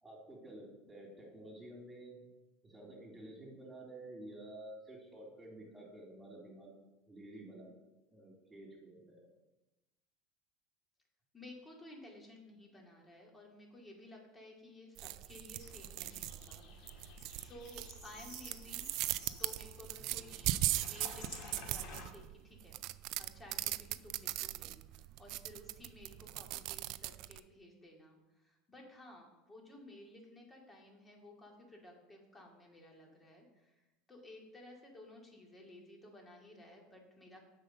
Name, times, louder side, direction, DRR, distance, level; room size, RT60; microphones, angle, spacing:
voice 1, 0.0-2.3 2.6-6.7 7.1-7.7 8.1-9.3, right 1 dB, 15° right, -2 dB, 3.4 m, -51 dB
voice 2, 11.3-16.9 17.3-18.9 19.4-20.5 20.8-22.8 23.1-33.8 34.1-37.4, left 1 dB, 15° left, 0 dB, 2.4 m, -55 dB
sound 1, 15.0-27.4, right 16 dB, 60° right, 0.3 m, -40 dB
sound 2, 15.6-22.1, left 3 dB, 60° left, 1.9 m, -53 dB
7.5 x 5.5 x 6.6 m, 1.0 s
supercardioid pair, 115°, 0 cm